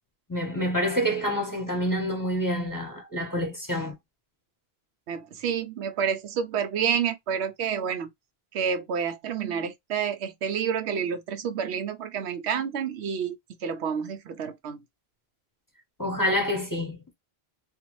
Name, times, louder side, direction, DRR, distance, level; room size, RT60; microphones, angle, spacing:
voice 1, 0.3-4.0 16.0-17.1, equal, 20° left, 0.9 m, -27 dB
voice 2, 5.1-8.1 8.5-14.8, right 7 dB, 85° right, 0.9 m, -29 dB
2.6 x 2.4 x 3.0 m
omnidirectional pair, 1.1 m